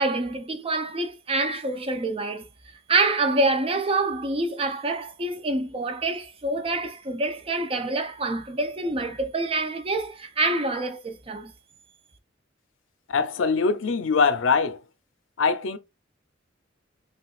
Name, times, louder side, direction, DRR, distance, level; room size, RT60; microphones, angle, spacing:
voice 1, 0.0-2.5 2.9-11.5, right 2 dB, 30° right, 0.5 m, -26 dB
voice 2, 13.1-14.8 15.4-15.8, left 5 dB, 85° left, 0.5 m, -22 dB
5.6 x 2.4 x 2.3 m
head